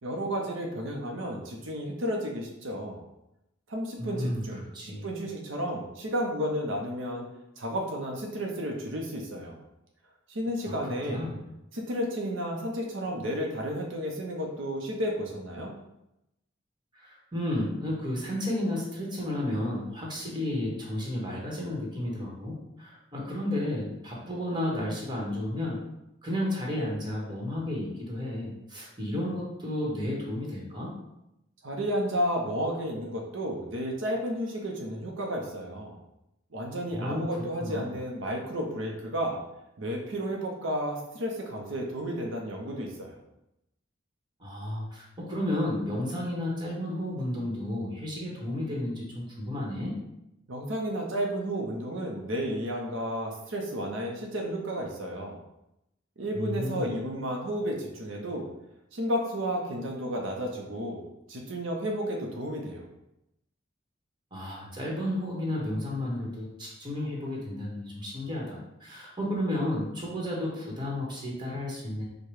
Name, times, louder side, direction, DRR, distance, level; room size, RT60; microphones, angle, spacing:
voice 1, 0.0-3.0 3.7-7.3 7.6-9.6 10.3-11.3 11.7-15.7 31.6-36.0 36.5-39.4 39.8-43.2 50.5-55.4 56.2-58.5 58.9-61.0 61.3-62.8, equal, 80° right, 0 dB, 0.7 m, -32 dB
voice 2, 4.0-4.4 4.7-5.1 10.7-10.8 11.1-11.4 17.0-25.8 26.2-30.9 36.9-37.9 44.4-50.0 56.3-56.9 64.3-72.0, left 1 dB, 25° right, -3 dB, 1.2 m, -32 dB
4.7 x 2.2 x 4.7 m, 0.87 s
head